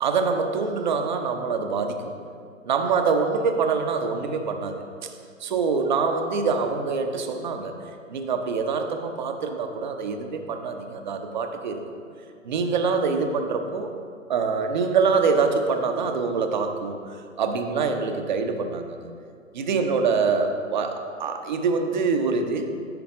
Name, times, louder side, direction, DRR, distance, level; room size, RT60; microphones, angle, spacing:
voice 1, 0.0-2.1 2.7-4.8 5.0-5.1 5.4-7.7 8.1-12.0 12.4-13.9 14.3-17.0 17.4-19.0 19.5-22.7, right 5 dB, 35° right, 6 dB, 0.8 m, -25 dB
10.5 x 8.7 x 3.7 m, 2.3 s
figure-of-eight pair, 125°, 41 cm